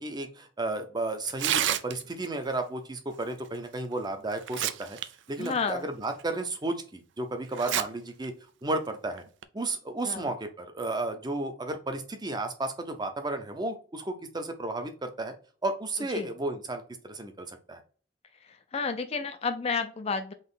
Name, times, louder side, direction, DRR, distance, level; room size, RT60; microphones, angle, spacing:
voice 1, 0.0-5.0 5.3-8.3 8.6-9.2 9.5-15.3 15.6-17.8, right 2 dB, 20° right, 6 dB, 0.6 m, -33 dB
Tearing, 1.3-2.3 3.7-3.8 4.3-5.0 5.4-5.5 6.2-6.3 7.5-7.8 8.2-8.3 9.2-9.4, right 11 dB, 65° right, 0.4 m, -29 dB
voice 2, 5.4-5.9 10.0-10.3 16.1-16.3 18.4-20.3, left 5 dB, 30° left, 8 dB, 0.4 m, -31 dB
3.9 x 3.0 x 3.9 m, 0.40 s
head